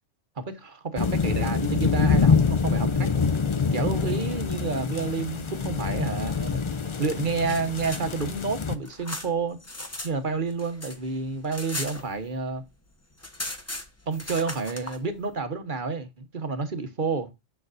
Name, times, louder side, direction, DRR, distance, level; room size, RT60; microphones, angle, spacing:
voice 1, 0.4-3.1 3.7-6.6 7.0-9.6 10.0-12.6 14.1-17.3, right 4 dB, 40° right, 1.2 m, -29 dB
sound 1, 1.0-8.7, left 5 dB, 45° left, 0.4 m, -25 dB
sound 2, 7.5-10.1 10.4-12.6 12.8-12.9 13.2-15.0, left 1 dB, 15° left, 0.9 m, -37 dB
7.1 x 6.5 x 2.5 m
omnidirectional pair, 1.3 m